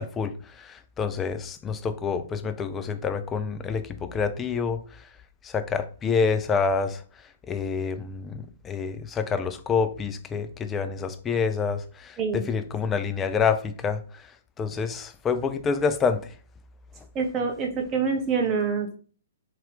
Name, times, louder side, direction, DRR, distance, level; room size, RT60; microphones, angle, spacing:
voice 1, 0.0-5.0 5.4-7.0 7.5-14.3 14.6-16.3, left 5 dB, 15° left, 0.3 m, -27 dB
voice 2, 17.1-19.0, right 5 dB, 20° right, 0.7 m, -26 dB
3.0 x 2.8 x 3.6 m
figure-of-eight pair, 120°, 0 cm